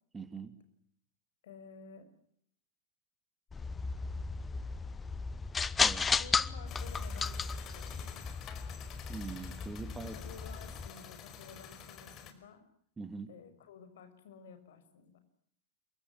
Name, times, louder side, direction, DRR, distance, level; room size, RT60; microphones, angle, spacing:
voice 1, 0.1-0.5 5.8-6.0 9.1-10.2 13.0-13.3, right 4 dB, 15° right, 10 dB, 2.5 m, -42 dB
voice 2, 1.4-2.1 6.1-8.2 10.0-12.6 13.3-15.2, left 6 dB, 60° left, 9 dB, 5.9 m, -53 dB
sound 1, 3.5-10.9, left 5 dB, 15° left, 1.0 m, -35 dB
sound 2, 6.7-12.3, left 8 dB, 35° left, 4.8 m, -49 dB
28.0 x 24.0 x 7.5 m, 0.66 s
figure-of-eight pair, 90°, 0 cm